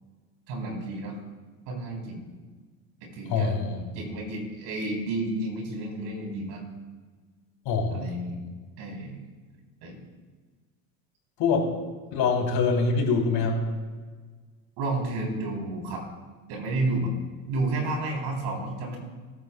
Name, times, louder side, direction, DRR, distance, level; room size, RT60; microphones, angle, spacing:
voice 1, 0.5-1.2 1.7-2.3 3.0-3.5 3.9-6.6 7.9-8.3 8.8-9.2 9.8-10.0 14.8-16.0 16.5-17.1 17.5-19.0, right 2 dB, 70° right, 0 dB, 3.7 m, -31 dB
voice 2, 3.3-3.8 7.6-8.4 11.4-11.7 12.1-13.6, left 4 dB, 60° left, 0 dB, 3.3 m, -25 dB
14.5 x 12.0 x 2.3 m, 1.5 s
supercardioid pair, 90°, 43 cm